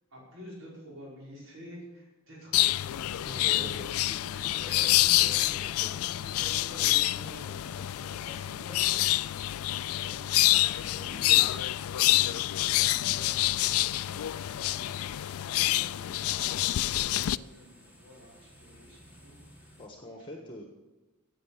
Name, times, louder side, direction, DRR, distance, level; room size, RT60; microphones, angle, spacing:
voice 1, 0.1-10.3 10.9-11.6 11.9-14.9 15.2-19.8 20.3-20.5, equal, 70° right, -6 dB, 5.3 m, -49 dB
sound 1, 2.5-17.4, left 16 dB, 85° left, 0.4 m, -27 dB
voice 2, 3.2-4.0 4.6-5.9 7.7-7.9 8.2-8.3 10.6-11.7 19.8-20.7, left 2 dB, 20° left, 1 dB, 1.4 m, -44 dB
sound 2, 9.2-19.9, right 1 dB, 10° right, 1.9 m, -57 dB
14.0 x 9.0 x 7.3 m, 1.1 s
head